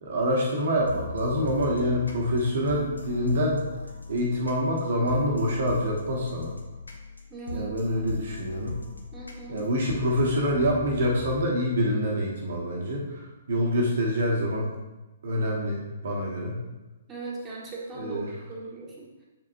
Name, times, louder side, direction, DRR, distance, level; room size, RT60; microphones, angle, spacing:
voice 1, 0.0-3.6 4.1-6.5 7.5-8.7 9.5-14.7 15.2-16.5 17.9-18.3, equal, 55° right, -2 dB, 1.1 m, -26 dB
sound 1, 0.7-11.4, left 3 dB, 85° left, 0.9 m, -39 dB
voice 2, 7.3-7.7 8.1-8.2 9.1-9.7 17.1-19.2, right 3 dB, 20° right, -5 dB, 1.5 m, -39 dB
7.4 x 4.9 x 2.6 m, 1.1 s
figure-of-eight pair, 120°, 0 cm